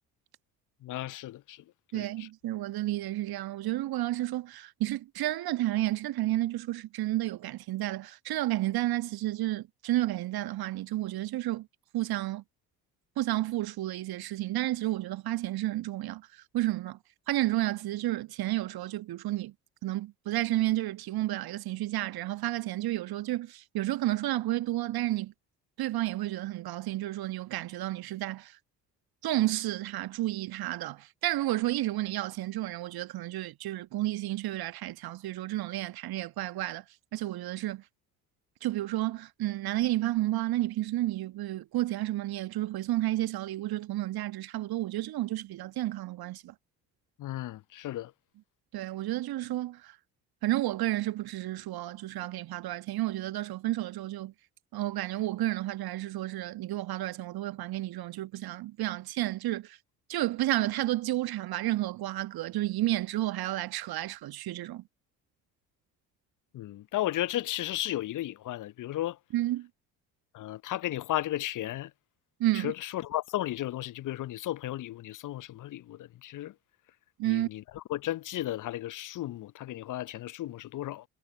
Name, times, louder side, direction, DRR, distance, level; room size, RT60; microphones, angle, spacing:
voice 1, 0.8-1.6 1.9-2.1 47.2-48.1 66.5-69.2 70.3-71.9 72.6-76.5 77.3-77.6 77.9-81.0, left 14 dB, 40° left, 0.9 m, -34 dB
voice 2, 1.9-11.7 11.9-12.4 13.2-17.0 17.3-19.5 19.8-25.3 25.8-28.6 29.2-36.8 37.1-37.8 38.6-46.5 48.7-50.0 50.4-54.3 54.7-59.8 60.1-64.8 69.3-69.7 72.4-72.7 77.2-77.5, right 15 dB, 45° right, 1.6 m, -31 dB
figure-of-eight pair, 50°, 49 cm